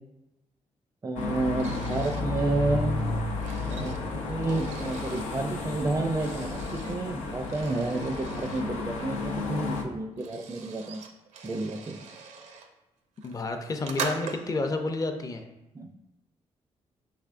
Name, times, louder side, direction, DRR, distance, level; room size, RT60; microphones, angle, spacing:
voice 1, 1.0-2.9 3.7-11.0 11.4-12.0 15.7-15.9, right 2 dB, 25° right, 4 dB, 0.4 m, -30 dB
sound 1, 1.2-9.8, left 3 dB, 85° left, 0.6 m, -32 dB
sound 2, 1.6-2.3 3.0-5.3 6.1-7.0 7.5-8.7 9.6-9.7 9.9-12.7 13.2-14.7, right 5 dB, 85° right, 0.5 m, -41 dB
voice 2, 13.2-15.4, left 3 dB, 30° left, 5 dB, 0.5 m, -30 dB
5.8 x 3.4 x 2.5 m, 0.95 s
cardioid pair, 85°, 12 cm